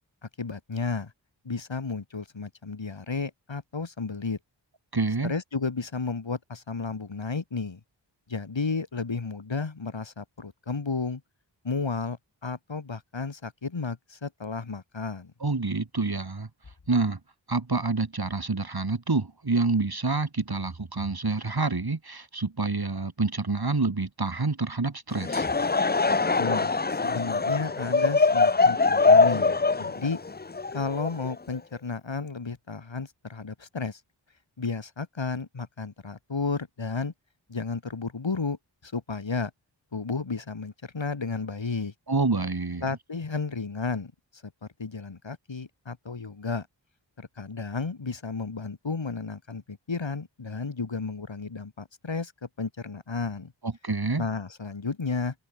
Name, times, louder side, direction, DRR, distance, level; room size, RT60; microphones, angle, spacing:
voice 1, 0.4-1.1 1.4-4.4 5.2-7.8 8.3-11.2 11.6-15.3 26.4-30.2 30.7-34.0 34.6-37.1 37.5-38.6 38.8-39.5 39.9-41.9 42.8-46.7 47.2-53.5 54.2-55.3, left 4 dB, 75° left, 6.8 m, -33 dB
voice 2, 4.9-5.3 15.4-16.5 16.9-17.2 17.5-25.5 42.1-42.9 53.6-54.2, right 3 dB, 55° right, 4.9 m, -27 dB
Laughter / Crowd, 25.1-31.6, left 4 dB, 20° left, 0.6 m, -23 dB
wide cardioid pair, 50°, 45 cm